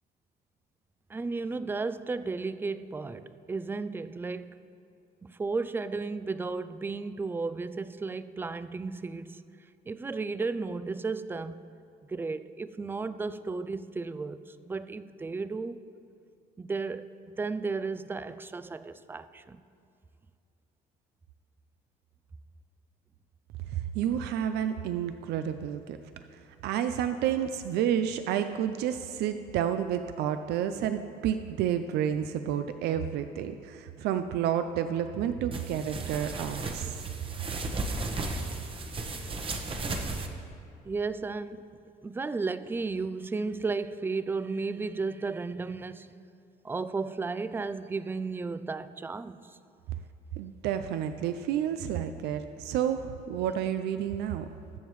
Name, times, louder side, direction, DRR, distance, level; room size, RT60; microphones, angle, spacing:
voice 1, 1.1-4.6 5.2-9.4 9.9-11.6 12.1-15.8 16.6-19.6 40.9-41.7 42.0-46.2 46.6-49.6, right 4 dB, 15° right, 0.3 m, -34 dB
voice 2, 23.7-26.0 26.3-37.0 50.4-54.5, right 9 dB, 80° right, 0.5 m, -30 dB
sound 1, 35.5-40.3, right 2 dB, 30° right, 1.0 m, -35 dB
20.5 x 7.3 x 3.1 m
cardioid pair, 110°, 17 cm